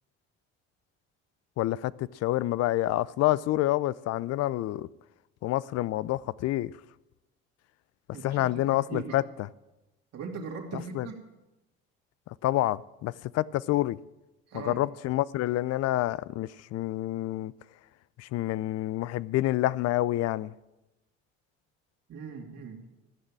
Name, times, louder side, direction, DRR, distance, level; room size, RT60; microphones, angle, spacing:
voice 1, 1.6-4.9 5.4-6.7 8.2-9.5 10.7-11.1 12.4-14.0 14.5-17.5 18.2-20.5, left 15 dB, 60° left, 0.5 m, -28 dB
voice 2, 8.1-9.2 10.1-11.1 14.5-14.8 22.1-22.8, right 5 dB, 60° right, 2.7 m, -39 dB
15.0 x 6.6 x 8.8 m
supercardioid pair, 80°, 29 cm